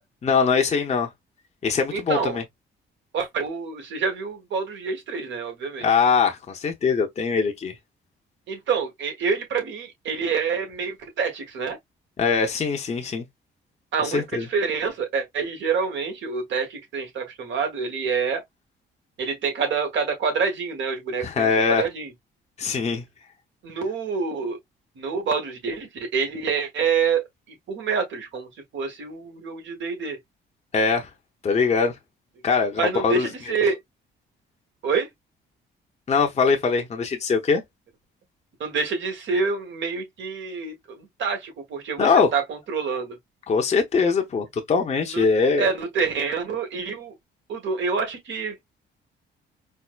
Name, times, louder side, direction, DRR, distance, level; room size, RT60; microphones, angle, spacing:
voice 1, 0.2-1.1 1.6-2.4 5.8-7.7 12.2-13.2 14.0-14.5 21.2-21.8 22.6-23.0 30.7-31.1 31.4-31.9 32.4-33.3 36.1-37.6 42.0-42.3 43.5-45.7, left 5 dB, 35° left, 0.8 m, -22 dB
voice 2, 1.9-2.4 3.1-5.9 8.5-11.8 13.9-18.4 19.2-22.1 23.6-24.6 25.0-27.2 27.7-30.2 32.7-33.8 34.8-35.1 38.6-43.2 45.1-45.2 45.6-47.1 47.5-48.5, right 5 dB, 70° right, 1.4 m, -27 dB
4.4 x 2.1 x 2.2 m
cardioid pair, 90°, 20 cm